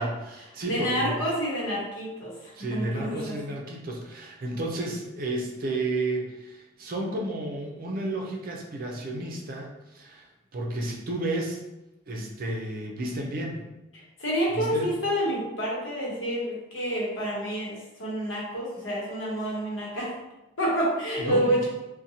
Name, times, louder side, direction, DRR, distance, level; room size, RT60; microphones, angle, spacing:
voice 1, 0.0-1.1 2.6-11.6 12.1-13.6 14.5-14.9 21.2-21.5, right 2 dB, 50° right, 0 dB, 0.5 m, -32 dB
voice 2, 0.6-3.4 14.2-20.1 20.6-21.6, equal, 75° left, -4 dB, 0.9 m, -28 dB
2.7 x 2.2 x 2.7 m, 0.99 s
head